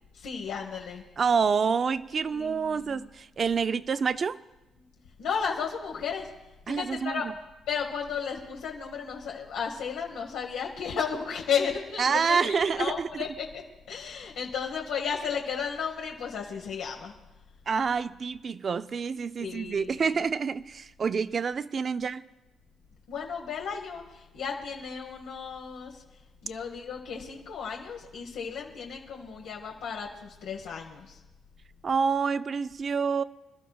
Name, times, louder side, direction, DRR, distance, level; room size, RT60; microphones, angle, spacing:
voice 1, 0.1-1.0 2.3-3.1 5.2-6.3 6.7-7.2 7.7-13.6 13.9-17.1 19.4-20.1 23.1-26.0 26.4-31.2, left 6 dB, 85° left, 1.2 m, -34 dB
voice 2, 1.2-4.4 6.7-7.3 12.0-13.1 17.7-22.2 31.8-33.2, right 5 dB, 45° right, 0.4 m, -27 dB
26.0 x 12.0 x 2.3 m
cardioid pair, 90°, 0 cm